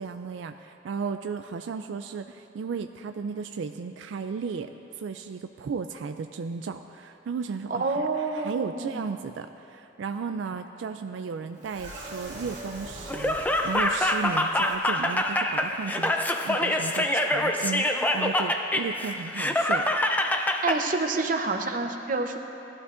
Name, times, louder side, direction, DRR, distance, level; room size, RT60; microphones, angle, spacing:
voice 1, 0.0-4.7 5.0-16.1 16.4-20.1, right 5 dB, 80° right, 7 dB, 0.3 m, -34 dB
voice 2, 7.7-9.0 20.6-22.4, right 3 dB, 45° right, 4 dB, 0.7 m, -28 dB
sound 1, 11.6-14.8 15.1-15.2 15.6-15.7, right 1 dB, 65° right, 2.5 m, -42 dB
Laughter, 13.1-20.8, left 1 dB, 10° left, 0.5 m, -25 dB
18.0 x 12.0 x 2.5 m, 3.0 s
head